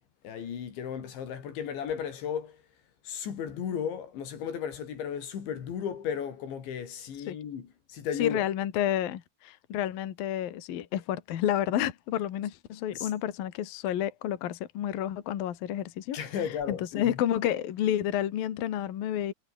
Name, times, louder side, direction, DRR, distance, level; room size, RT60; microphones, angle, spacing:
voice 1, 0.2-2.6 3.0-8.4 12.9-13.1 16.1-17.2, left 8 dB, 90° left, 6.0 m, -35 dB
voice 2, 8.2-16.2 16.7-19.3, left 11 dB, 60° left, 3.3 m, -30 dB
omnidirectional pair, 5.1 m